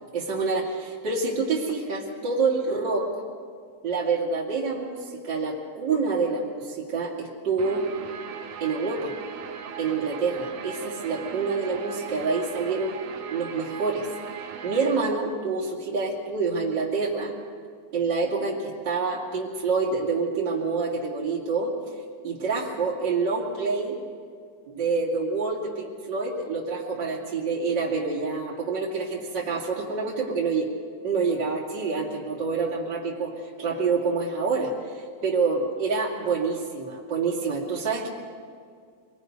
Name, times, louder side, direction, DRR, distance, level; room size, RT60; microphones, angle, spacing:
voice 1, 0.1-3.1 3.8-7.9 8.6-9.1 9.8-13.0 13.3-14.1 14.6-17.3 17.9-21.7 22.2-24.0 24.7-30.7 31.0-33.3 33.6-38.1, right 4 dB, 30° right, -5 dB, 2.2 m, -27 dB
Guitar, 7.6-15.0, right 7 dB, 65° right, 2.2 m, -38 dB
26.0 x 20.5 x 5.3 m, 2.2 s
omnidirectional pair, 5.3 m